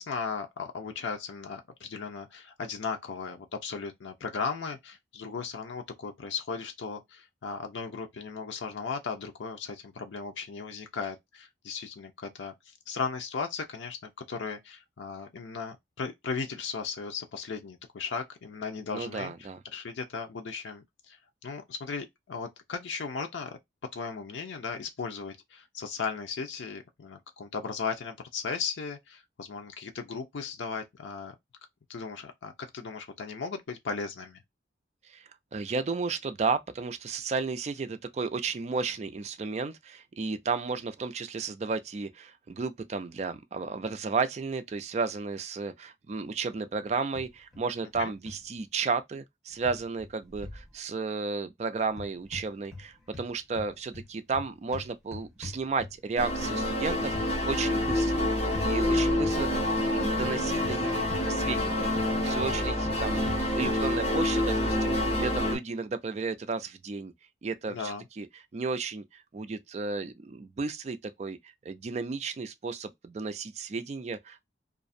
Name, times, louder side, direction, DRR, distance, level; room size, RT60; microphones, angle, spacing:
voice 1, 0.0-12.5 12.9-23.6 23.9-31.4 31.9-34.4 48.0-48.1 58.9-59.2 67.7-68.0, left 5 dB, 85° left, 0.5 m, -36 dB
voice 2, 18.9-19.6 35.1-35.2 35.5-58.3 58.6-67.1 67.4-68.3 68.5-71.4 71.7-74.4, right 4 dB, 35° right, 0.3 m, -33 dB
sound 1, 47.1-47.6 47.9-48.4 49.6-50.7 51.9-52.9 53.1-56.2 57.1-57.3 57.9-58.2 58.5-58.8 59.2-59.4 60.2-61.7 61.9-63.9, left 2 dB, 5° left, 1.0 m, -42 dB
sound 2, 56.2-65.6, left 1 dB, 35° left, 1.2 m, -27 dB
2.4 x 2.0 x 2.5 m
head